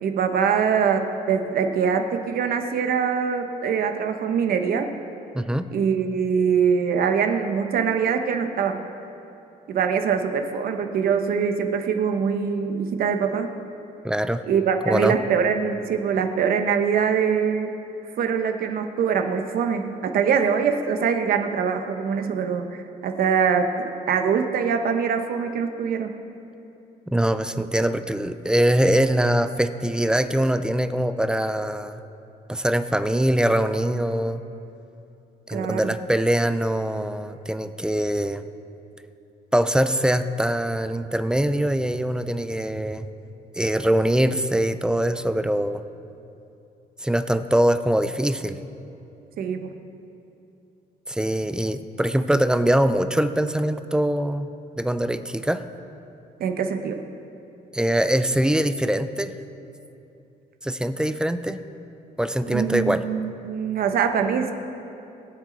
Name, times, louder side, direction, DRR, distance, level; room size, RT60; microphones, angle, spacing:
voice 1, 0.0-4.9 5.7-8.8 9.7-13.5 14.5-17.7 18.2-26.1 35.5-35.9 49.4-49.7 56.4-57.0 62.5-64.5, right 6 dB, 60° right, 6 dB, 1.0 m, -23 dB
voice 2, 5.3-5.7 14.0-14.4 14.9-15.1 27.1-32.0 32.5-34.4 35.5-38.4 39.5-43.1 43.6-45.8 47.0-48.6 51.1-55.6 57.7-59.3 60.6-61.6 62.2-63.0, right 1 dB, 5° right, 10 dB, 0.4 m, -23 dB
21.5 x 7.5 x 4.0 m, 2.8 s
cardioid pair, 130°, 17 cm